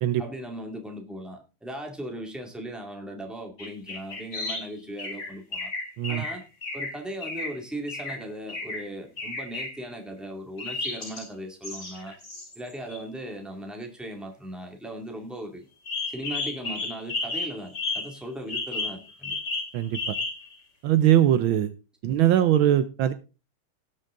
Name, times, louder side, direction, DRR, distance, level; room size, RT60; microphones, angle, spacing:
voice 1, 0.2-5.7 6.1-6.4 6.7-12.1 12.5-15.6 16.1-19.4 22.0-22.1, right 1 dB, ahead, 2 dB, 2.0 m, -38 dB
sound 1, 3.6-4.7 5.0-7.6 7.9-8.2 8.5-8.8 9.2-9.8 10.6-11.2 11.6-13.0 15.9-18.2 18.5-20.5, left 3 dB, 35° left, 3.3 m, -33 dB
voice 2, 20.8-21.7 22.0-23.1, right 11 dB, 75° right, 12 dB, 1.4 m, -21 dB
18.0 x 6.4 x 3.7 m, 0.31 s
omnidirectional pair, 2.4 m